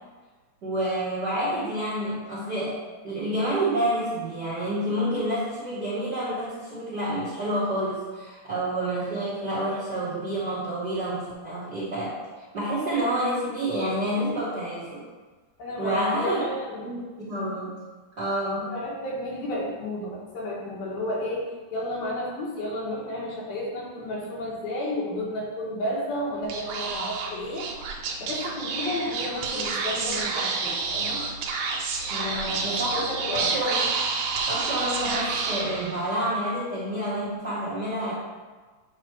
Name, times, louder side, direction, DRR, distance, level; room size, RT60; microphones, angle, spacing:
voice 1, 0.6-2.8 3.0-12.2 12.5-15.0 15.8-16.4 16.8-17.8 18.2-18.7 32.1-32.9 33.3-33.9 34.5-38.1, right 1 dB, 50° right, -11 dB, 1.2 m, -28 dB
voice 2, 15.6-16.9 18.7-27.7 28.2-31.2 32.2-33.5, left 1 dB, 80° left, -5 dB, 3.4 m, -32 dB
Speech / Whispering, 26.4-36.2, right 4 dB, 75° right, 1.9 m, -29 dB
9.0 x 3.2 x 4.6 m, 1.3 s
omnidirectional pair, 4.2 m